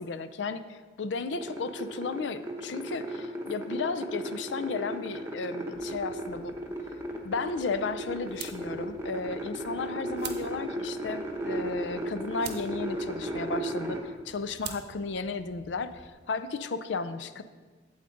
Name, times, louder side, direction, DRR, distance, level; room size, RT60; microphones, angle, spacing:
voice 1, 0.0-6.6 7.2-16.0 16.3-17.4, left 4 dB, 80° left, 12 dB, 0.5 m, -34 dB
sound 1, 1.3-14.0, right 1 dB, 15° right, 0.8 m, -35 dB
sound 2, 5.7-16.1, right 7 dB, 60° right, 0.8 m, -48 dB
8.5 x 7.9 x 3.8 m, 1.4 s
head